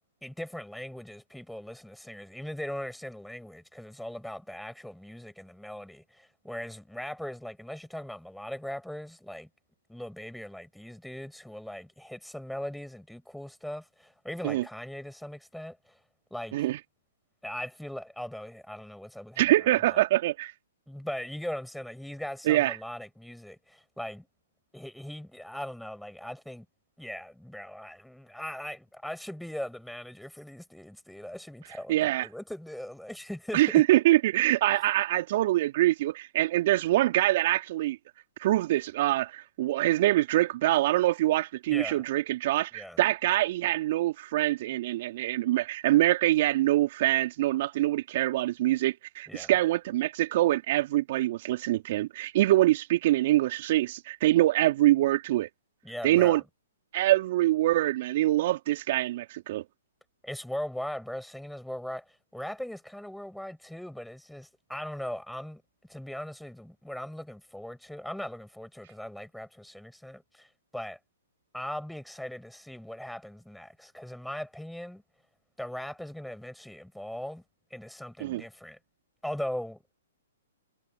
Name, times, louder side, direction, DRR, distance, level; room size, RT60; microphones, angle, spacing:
voice 1, 0.2-9.5 9.9-16.0 16.3-16.5 17.4-20.0 20.9-24.3 24.7-26.7 27.0-33.8 34.7-34.8 41.7-42.0 42.7-43.0 49.3-49.5 55.8-56.4 60.2-65.6 65.9-71.0 71.5-75.0 75.6-77.4 77.7-78.8 79.2-79.9, left 1 dB, ahead, 6.1 m, -39 dB
voice 2, 19.4-20.5 22.5-22.8 31.9-32.3 33.5-38.0 38.4-55.5 56.0-56.4 56.9-59.6 78.2-78.4, right 15 dB, 50° right, 2.9 m, -24 dB
hypercardioid pair, 125°, 0 cm